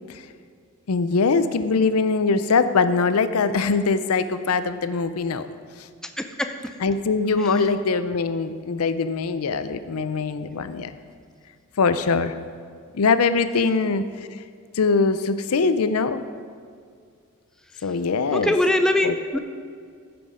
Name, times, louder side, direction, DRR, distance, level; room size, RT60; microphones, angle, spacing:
voice 1, 0.9-5.5 6.8-10.9 11.8-12.3 12.9-14.0 14.8-16.2 17.8-18.5 19.0-19.4, left 4 dB, 75° left, 11 dB, 0.5 m, -22 dB
voice 2, 6.0-6.5 7.4-7.5 18.3-19.4, left 1 dB, 5° left, 6 dB, 0.4 m, -22 dB
15.5 x 6.0 x 4.9 m, 2.1 s
head